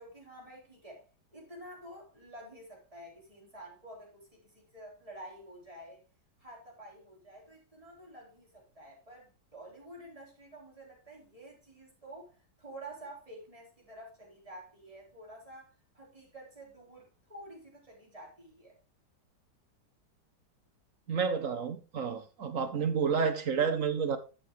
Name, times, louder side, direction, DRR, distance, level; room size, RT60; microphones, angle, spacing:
voice 1, 0.0-6.0 6.4-18.7, right 1 dB, 20° right, 4.0 m, -50 dB
voice 2, 21.1-24.2, right 6 dB, 55° right, 1.1 m, -30 dB
11.5 x 7.2 x 3.1 m
omnidirectional pair, 1.9 m